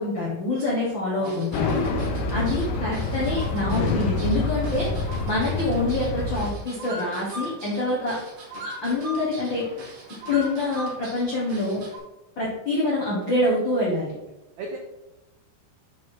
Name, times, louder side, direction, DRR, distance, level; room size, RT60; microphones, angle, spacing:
voice 1, 0.0-1.7 2.3-4.9 5.2-8.2 8.6-9.7 10.3-11.8 12.4-14.1, left 2 dB, 70° left, -5 dB, 1.1 m, -26 dB
sound 1, 1.2-12.0, right 1 dB, 45° right, 1.8 m, -40 dB
voice 2, 1.2-1.8 14.6-14.8, right 2 dB, 85° right, 1 dB, 1.6 m, -36 dB
sound 2, 1.5-6.5, left 3 dB, 90° left, 2.8 m, -27 dB
6.6 x 4.9 x 4.6 m, 0.97 s
omnidirectional pair, 4.5 m